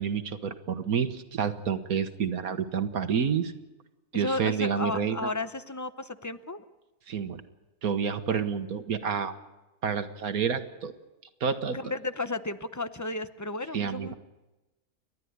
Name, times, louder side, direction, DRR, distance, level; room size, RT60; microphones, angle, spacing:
voice 1, 0.0-3.5 4.1-5.3 7.1-7.4 7.8-9.3 9.8-10.9 11.4-11.8 13.7-14.1, right 7 dB, 75° right, 9 dB, 1.7 m, -29 dB
voice 2, 4.1-6.7 8.3-8.4 11.7-14.1, left 2 dB, 20° left, 11 dB, 0.4 m, -33 dB
30.0 x 12.5 x 9.5 m, 1.1 s
omnidirectional pair, 1.6 m